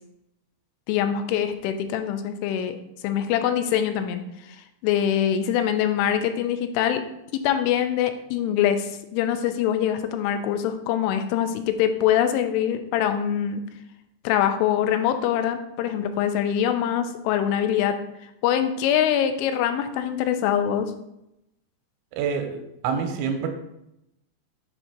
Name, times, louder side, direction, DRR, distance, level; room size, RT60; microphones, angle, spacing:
voice 1, 0.9-2.8 3.0-4.6 4.8-7.0 7.3-13.6 14.2-18.0 18.4-20.9, left 10 dB, 90° left, 8 dB, 3.1 m, -24 dB
voice 2, 22.1-23.5, right 6 dB, 90° right, 5 dB, 3.0 m, -27 dB
7.5 x 2.7 x 5.8 m, 0.84 s
omnidirectional pair, 5.4 m